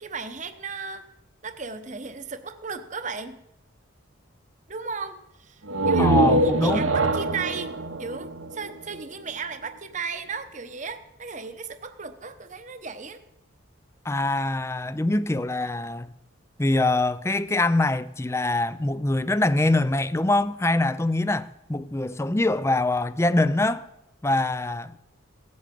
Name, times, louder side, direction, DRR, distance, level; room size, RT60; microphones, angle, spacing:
voice 1, 0.0-1.0 1.4-3.4 4.7-13.2, right 5 dB, 35° right, 0.9 m, -35 dB
sound 1, 5.6-9.3, right 2 dB, 80° right, 1.1 m, -23 dB
voice 2, 6.0-6.9 14.0-16.1 16.6-23.9 24.2-24.9, left 2 dB, 15° left, 0.4 m, -24 dB
17.0 x 8.5 x 7.6 m
head